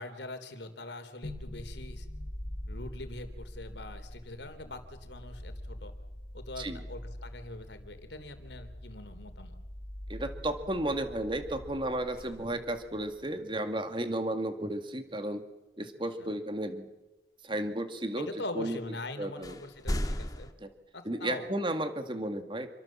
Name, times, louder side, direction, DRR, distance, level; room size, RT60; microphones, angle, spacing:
voice 1, 0.0-2.1 2.7-5.9 6.3-9.5 16.2-16.3 18.1-20.5 20.9-21.5, left 2 dB, 70° left, 8 dB, 3.4 m, -43 dB
sound 1, 1.2-13.3, left 1 dB, 35° left, 1.5 m, -44 dB
voice 2, 10.1-15.4 15.8-16.9 17.4-18.3 18.5-18.8 19.2-19.6 20.6-20.7 21.0-22.7, right 1 dB, 25° right, 8 dB, 2.1 m, -33 dB
sound 2, 10.5-11.3 12.0-13.0 16.5-16.6 18.7-18.8 19.4-20.5, equal, 20° left, 1.7 m, -37 dB
28.0 x 23.5 x 7.4 m, 1.0 s
head